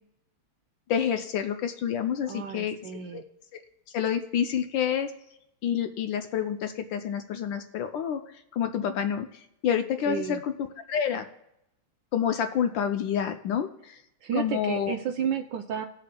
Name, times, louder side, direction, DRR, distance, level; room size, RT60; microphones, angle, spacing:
voice 1, 0.9-2.8 3.1-3.2 3.9-5.1 5.6-10.5 10.9-11.3 12.1-14.0 14.4-14.9, left 8 dB, 70° left, 8 dB, 1.2 m, -28 dB
voice 2, 2.3-3.2 10.1-10.4 14.2-15.9, right 8 dB, 70° right, 6 dB, 1.1 m, -32 dB
18.5 x 6.6 x 2.2 m, 0.82 s
omnidirectional pair, 2.4 m